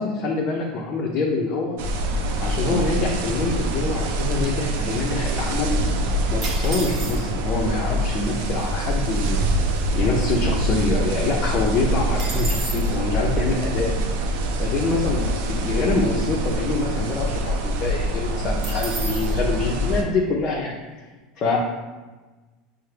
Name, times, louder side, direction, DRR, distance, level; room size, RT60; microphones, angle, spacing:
voice 1, 0.0-1.8 2.4-5.7 6.3-9.5 9.9-13.9 14.6-20.8 21.4-21.6, left 3 dB, 40° left, -3 dB, 0.6 m, -25 dB
sound 1, 1.8-20.0, right 1 dB, 75° right, 0.5 m, -24 dB
sound 2, 6.4-7.5 8.3-8.4 8.6-8.9 9.4-10.8 11.2-11.3 11.6-13.0 18.6-19.4, right 2 dB, 40° right, 0.9 m, -34 dB
5.5 x 2.1 x 3.3 m, 1.3 s
supercardioid pair, 110°, 0 cm